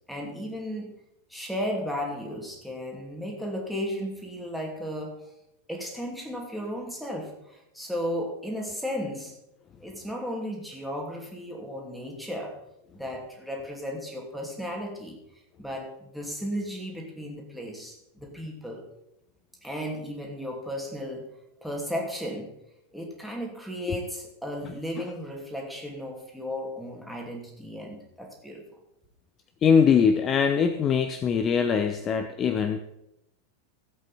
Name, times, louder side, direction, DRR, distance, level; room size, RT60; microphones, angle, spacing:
voice 1, 0.1-0.9 1.3-5.1 5.7-9.3 9.8-12.5 12.9-15.2 15.6-18.8 19.6-21.3 21.6-22.5 22.9-28.6, equal, ahead, 1 dB, 2.6 m, -34 dB
voice 2, 29.6-32.8, left 6 dB, 25° left, 9 dB, 0.7 m, -22 dB
15.5 x 8.2 x 4.2 m, 0.86 s
figure-of-eight pair, 90°, 0 cm